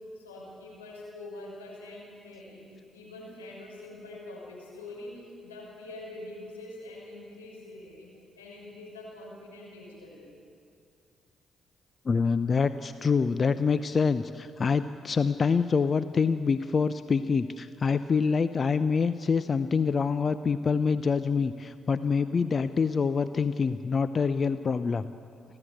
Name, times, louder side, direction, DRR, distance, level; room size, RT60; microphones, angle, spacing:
voice 1, 0.0-10.4, left 2 dB, 90° left, -4 dB, 6.0 m, -44 dB
voice 2, 12.0-25.1, left 5 dB, 45° left, 12 dB, 0.7 m, -26 dB
29.5 x 13.0 x 9.0 m, 2.3 s
hypercardioid pair, 40°, 0 cm